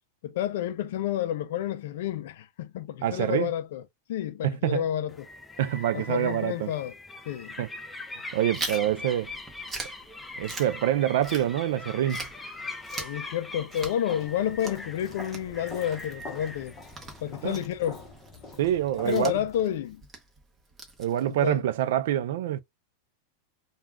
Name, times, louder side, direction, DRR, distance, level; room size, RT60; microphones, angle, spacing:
voice 1, 0.2-3.8 4.1-5.1 5.9-6.9 7.3-7.5 12.9-16.7 17.2-18.0 19.0-20.0 21.4-21.6, left 11 dB, 65° left, 0.4 m, -30 dB
voice 2, 3.0-3.5 4.4-4.8 5.6-6.7 7.6-7.7 8.3-9.3 10.4-12.3 17.4-17.6 18.6-19.4 21.0-22.6, right 11 dB, 70° right, 0.4 m, -26 dB
sound 1, 5.1-17.6, left 2 dB, 5° left, 0.4 m, -42 dB
Chewing mastication, 8.5-11.8 12.1-21.5, right 3 dB, 15° right, 0.8 m, -42 dB
Walk footsteps, 14.1-19.6, left 2 dB, 20° left, 0.8 m, -46 dB
2.3 x 2.3 x 3.3 m
supercardioid pair, 160°, 0 cm